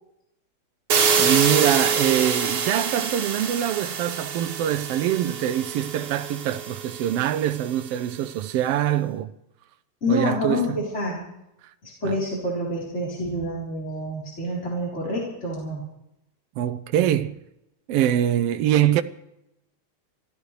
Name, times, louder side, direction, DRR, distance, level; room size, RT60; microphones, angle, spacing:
sound 1, 0.9-7.7, right 6 dB, 75° right, 3.4 m, -26 dB
voice 1, 1.2-9.3 10.1-10.8 16.6-17.4 17.9-19.0, right 11 dB, 90° right, 1.3 m, -24 dB
voice 2, 10.0-11.2 11.8-15.8, left 1 dB, 20° left, 3.9 m, -27 dB
25.5 x 15.5 x 3.2 m
omnidirectional pair, 3.5 m